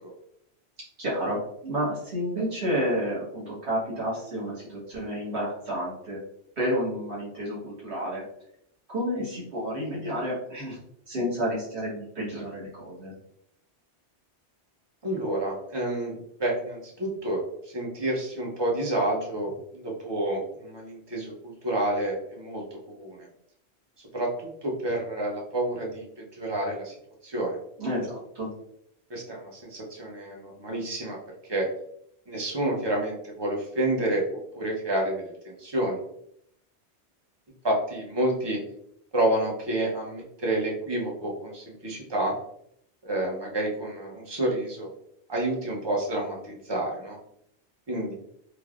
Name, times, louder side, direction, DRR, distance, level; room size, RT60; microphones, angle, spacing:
voice 1, 1.0-6.2 6.6-8.2 8.9-10.8 11.1-13.1 27.8-28.5, equal, 75° right, -6 dB, 1.5 m, -30 dB
voice 2, 15.0-22.6 22.9-23.3 24.1-26.9 27.2-27.6 29.1-31.2 31.5-31.7 32.3-36.0 37.6-38.6 39.1-42.3 43.0-44.9 45.3-47.2 47.9-48.1, right 1 dB, 30° right, -2 dB, 0.5 m, -29 dB
3.2 x 2.0 x 2.3 m, 0.71 s
omnidirectional pair, 1.1 m